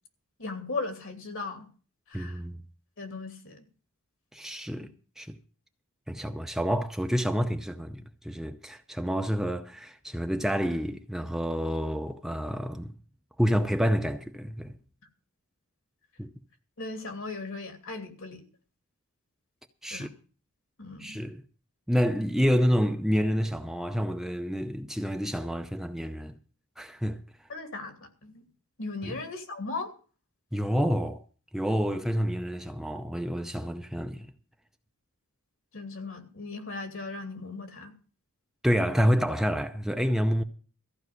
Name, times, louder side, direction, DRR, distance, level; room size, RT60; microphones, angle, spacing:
voice 1, 0.4-1.7 2.1-2.4 3.0-3.6 16.8-18.5 19.9-20.1 20.8-21.2 27.5-28.5 28.8-29.9 31.8-31.9 35.7-37.9, left 3 dB, 60° left, 2.7 m, -37 dB
voice 2, 2.1-2.6 4.3-4.9 5.2-5.4 6.1-12.9 13.4-14.7 16.2-16.3 19.8-20.1 21.0-21.4 21.9-26.3 26.8-27.2 29.0-29.1 30.5-31.2 31.5-34.3 38.6-40.4, equal, ahead, 0.6 m, -28 dB
14.5 x 5.5 x 9.4 m
head